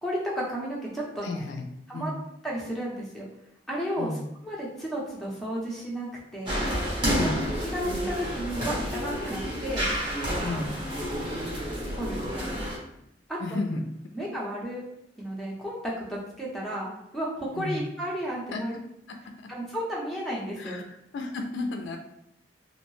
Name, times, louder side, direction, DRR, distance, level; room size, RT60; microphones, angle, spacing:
voice 1, 0.0-1.4 1.9-2.1 2.4-3.2 3.7-4.1 4.4-6.1 6.3-6.6 7.0-9.9 10.4-10.7 11.9-12.6 13.3-13.6 14.1-14.8 15.2-18.7 19.5-20.8, equal, ahead, -5 dB, 0.6 m, -33 dB
voice 2, 1.2-1.7 1.9-2.2 4.0-4.2 7.1-7.4 10.4-10.7 13.4-13.8 17.5-17.9 18.5-18.8 19.1-19.5 20.6-20.8 21.1-22.0, left 2 dB, 75° left, 4 dB, 0.3 m, -33 dB
sound 1, 6.5-12.8, equal, 25° right, 0.9 m, -30 dB
2.6 x 2.0 x 3.1 m, 0.79 s
head